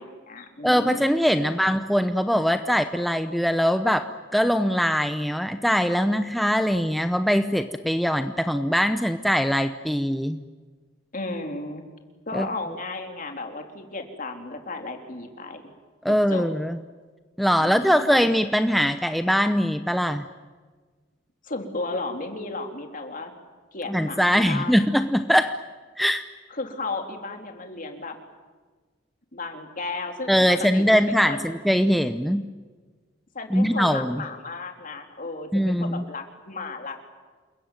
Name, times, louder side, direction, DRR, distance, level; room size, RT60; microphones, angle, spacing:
voice 1, 0.0-1.1 1.4-1.5 11.1-11.9 12.3-15.6 16.1-16.5 17.6-18.1 21.4-23.3 23.7-24.9 26.5-28.2 29.3-31.5 33.3-37.0, left 3 dB, 45° left, 4 dB, 3.5 m, -34 dB
voice 2, 0.6-10.4 12.3-12.5 16.0-16.8 17.4-20.3 23.9-25.6 26.0-26.2 30.3-32.4 33.5-34.2 35.5-36.0, equal, ahead, 8 dB, 0.8 m, -22 dB
28.5 x 22.0 x 9.2 m, 1.4 s
head